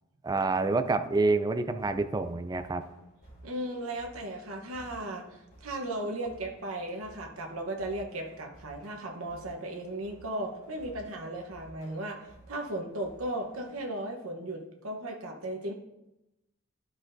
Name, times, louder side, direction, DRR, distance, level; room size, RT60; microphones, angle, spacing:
voice 1, 0.2-2.8, right 3 dB, 20° right, 9 dB, 0.4 m, -27 dB
sound 1, 1.8-13.8, right 1 dB, 45° left, 3.1 m, -55 dB
voice 2, 3.4-15.7, right 1 dB, 75° right, 2 dB, 1.1 m, -36 dB
12.5 x 6.0 x 2.6 m, 0.93 s
head